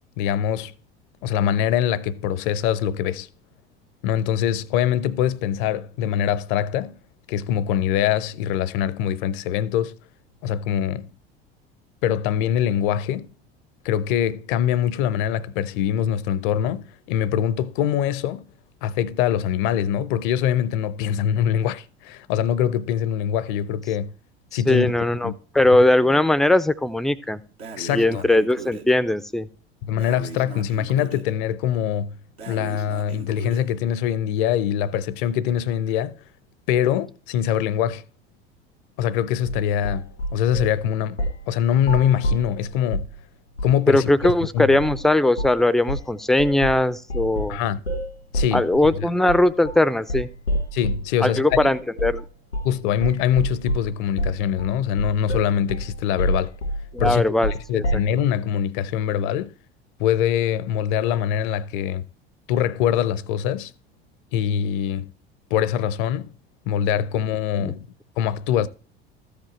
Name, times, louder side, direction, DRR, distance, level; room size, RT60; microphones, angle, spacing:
voice 1, 0.2-0.7 1.2-3.3 4.0-6.9 7.3-10.0 10.4-11.1 12.0-13.3 13.8-18.4 18.8-24.1 24.5-24.9 25.2-25.3 27.8-28.3 29.8-32.1 32.5-36.1 36.7-38.0 39.0-43.1 43.6-44.1 44.5-44.7 47.5-47.8 48.3-49.1 50.7-51.6 52.6-56.5 57.0-57.2 57.7-59.5 60.0-62.0 62.5-63.7 64.3-65.1 65.5-66.3 66.7-67.9 68.2-68.7, left 10 dB, 50° left, 0.7 m, -23 dB
voice 2, 24.7-27.4 27.9-29.5 43.9-47.6 48.5-50.3 51.2-52.2 56.9-57.8 67.6-67.7, left 1 dB, ahead, 0.5 m, -20 dB
Breathing, 27.6-28.9 30.0-31.3 32.4-33.7, right 5 dB, 80° right, 1.6 m, -38 dB
sound 1, 39.5-40.8 41.2-41.5 41.8-43.2 43.6-43.8 44.2-44.4 44.8-45.0 45.4-45.6 45.9-51.1 51.5-51.7 52.0-52.3 52.5-52.8 53.0-58.1, equal, 85° left, 1.5 m, -28 dB
14.0 x 5.1 x 4.4 m
figure-of-eight pair, 70°, 32 cm